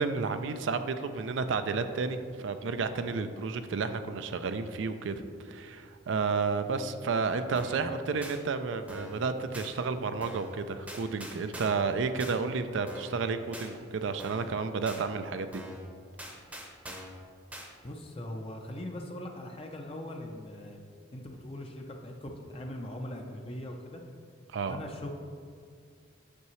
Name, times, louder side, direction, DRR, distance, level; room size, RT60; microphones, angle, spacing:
voice 1, 0.0-15.6 24.5-24.8, right 4 dB, 70° right, 9 dB, 0.4 m, -31 dB
sound 1, 7.6-7.9 8.2-8.4 8.9-9.2 9.5-9.7 10.2-10.5 10.9-11.9 12.2-12.4 12.9-13.2 13.5-13.7 14.2-14.5 14.9-15.0 15.5-15.8 16.2-17.2 17.5-17.7, equal, 5° right, 0.7 m, -43 dB
voice 2, 17.8-20.8 21.1-24.0 24.7-25.1, left 1 dB, 30° left, 2 dB, 0.5 m, -40 dB
8.3 x 6.6 x 3.1 m, 2.1 s
head